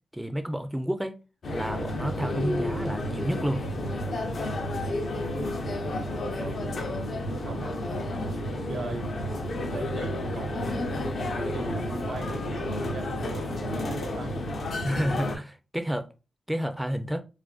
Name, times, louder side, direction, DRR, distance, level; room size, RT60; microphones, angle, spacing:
voice 1, 0.1-1.2 1.5-3.6 14.8-16.1 16.5-17.2, equal, 5° right, 0.4 m, -30 dB
sound 1, 1.4-15.4, left 1 dB, 65° left, 0.5 m, -31 dB
voice 2, 6.4-6.7 7.4-8.3 8.7-9.2 9.6-10.9 11.3-14.4, right 3 dB, 80° right, 0.5 m, -39 dB
2.4 x 2.1 x 2.3 m
cardioid pair, 60°, 0 cm